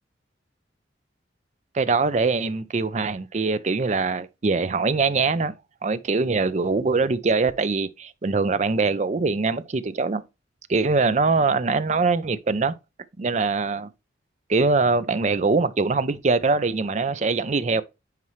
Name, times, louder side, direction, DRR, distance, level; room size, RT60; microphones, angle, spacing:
voice 1, 1.7-5.5 5.8-10.2 10.7-12.8 13.2-13.9 14.5-17.8, right 4 dB, 40° right, 0.5 m, -23 dB
9.5 x 4.4 x 3.1 m
head